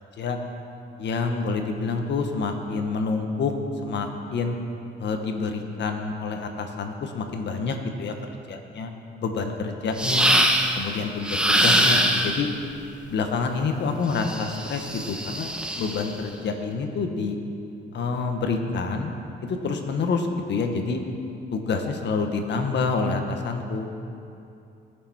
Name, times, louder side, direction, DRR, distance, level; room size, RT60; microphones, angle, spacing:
voice 1, 1.0-3.5 3.8-4.6 5.0-8.9 9.2-10.4 10.7-12.5 13.1-17.4 17.9-19.1 19.4-21.0 21.5-23.9, left 4 dB, 65° left, 4 dB, 1.5 m, -27 dB
sound 1, 10.0-10.8 11.2-12.5 14.2-16.1, equal, 5° right, 1.1 m, -22 dB
20.0 x 7.0 x 4.5 m, 2.7 s
cardioid pair, 90°, 20 cm